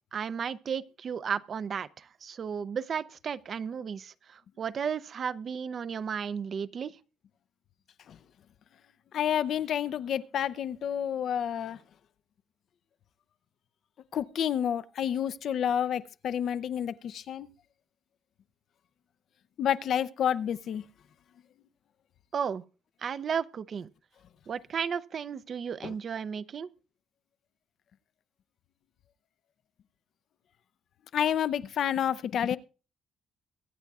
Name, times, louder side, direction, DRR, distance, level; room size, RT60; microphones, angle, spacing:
voice 1, 0.1-7.0 22.3-22.6 23.0-23.9 24.5-26.7, right 7 dB, 50° right, 0.5 m, -34 dB
voice 2, 9.1-11.8 14.1-17.5 19.6-20.8 25.8-25.9 31.1-32.6, left 9 dB, 65° left, 0.5 m, -29 dB
23.0 x 9.1 x 2.4 m
cardioid pair, 90°, 0 cm